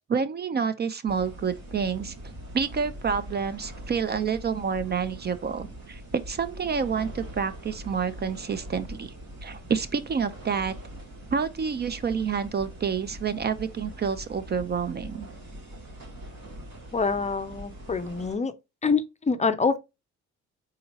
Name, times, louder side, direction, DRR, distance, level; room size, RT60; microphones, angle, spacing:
voice 1, 0.1-2.1 2.5-9.1 9.4-10.7 11.3-15.3, right 6 dB, 35° right, 0.4 m, -28 dB
sound 1, 1.1-18.4, equal, 65° right, 2.7 m, -42 dB
voice 2, 16.9-18.5 18.8-19.8, left 4 dB, 25° left, 0.5 m, -26 dB
4.2 x 3.7 x 2.7 m
cardioid pair, 90°, 30 cm